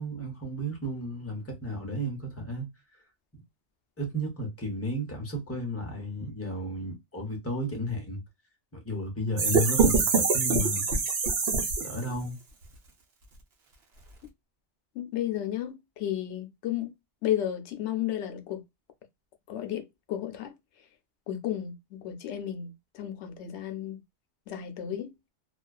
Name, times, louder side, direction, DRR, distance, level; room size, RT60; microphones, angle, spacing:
voice 1, 0.0-2.7 4.0-8.2 8.7-10.9 11.8-12.4, equal, 15° left, 0.7 m, -33 dB
sound 1, 9.4-12.2, right 5 dB, 65° right, 0.9 m, -24 dB
voice 2, 14.9-16.9 17.2-18.6 19.5-20.5 21.3-24.0 24.5-25.1, left 11 dB, 75° left, 0.9 m, -33 dB
2.3 x 2.3 x 2.2 m
omnidirectional pair, 1.2 m